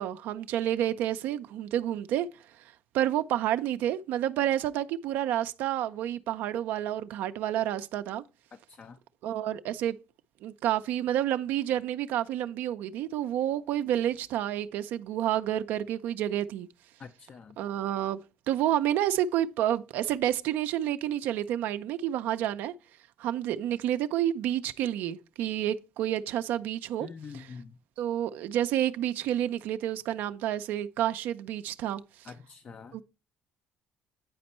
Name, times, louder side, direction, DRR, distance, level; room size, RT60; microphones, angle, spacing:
voice 1, 0.0-2.3 2.9-8.2 9.2-10.0 10.4-16.7 17.6-18.2 18.5-22.7 23.2-27.1 27.3-27.5 28.0-32.0 32.9-33.0, right 11 dB, 75° right, 0.4 m, -29 dB
voice 2, 8.5-9.0 17.0-17.6 27.0-27.8 32.2-33.0, left 5 dB, 45° left, 0.5 m, -46 dB
9.2 x 4.3 x 4.2 m
supercardioid pair, 75°, 3 cm